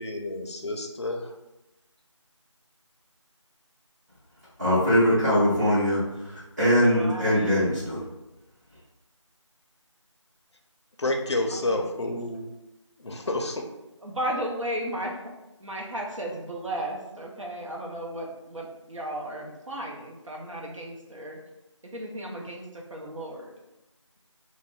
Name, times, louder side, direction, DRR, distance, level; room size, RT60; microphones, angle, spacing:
voice 1, 0.0-1.3 11.0-12.5 13.0-13.6, left 2 dB, 60° left, 3 dB, 0.4 m, -29 dB
voice 2, 4.6-8.0, equal, 35° right, -14 dB, 1.0 m, -22 dB
voice 3, 6.9-7.6 11.5-12.1 14.0-15.2 15.6-21.4 21.9-23.5, right 1 dB, 80° right, -1 dB, 0.7 m, -35 dB
2.4 x 2.1 x 3.4 m, 0.98 s
figure-of-eight pair, 175°, 16 cm